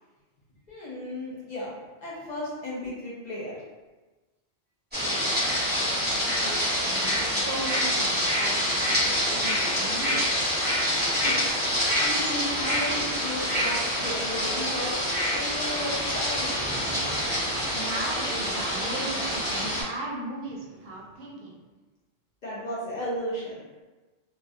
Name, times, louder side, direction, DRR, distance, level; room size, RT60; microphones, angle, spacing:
voice 1, 0.7-1.7 2.0-3.5 11.2-14.9 15.3-16.6 22.4-23.6, left 1 dB, 50° left, -6 dB, 0.6 m, -34 dB
sound 1, 4.9-19.8, equal, 10° right, 0.8 m, -26 dB
voice 2, 4.9-10.5 17.7-21.6, right 2 dB, 70° right, -3 dB, 0.8 m, -38 dB
2.2 x 2.1 x 2.6 m, 1.2 s
omnidirectional pair, 1.1 m